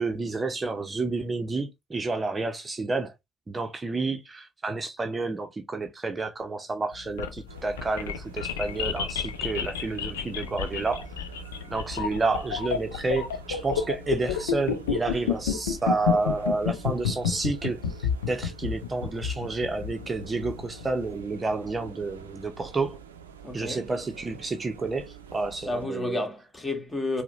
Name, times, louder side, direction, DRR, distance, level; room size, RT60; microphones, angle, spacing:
voice 1, 0.0-3.1 3.5-11.1 11.7-23.0 23.5-26.2, right 3 dB, 25° right, 0.7 m, -30 dB
sound 1, 6.9-21.1, left 8 dB, 80° left, 0.4 m, -30 dB
sound 2, 7.5-25.9, right 8 dB, 85° right, 0.4 m, -46 dB
voice 2, 23.4-23.9 25.6-27.2, left 2 dB, 20° left, 1.6 m, -31 dB
4.6 x 2.1 x 3.0 m
figure-of-eight pair, 50°, 0 cm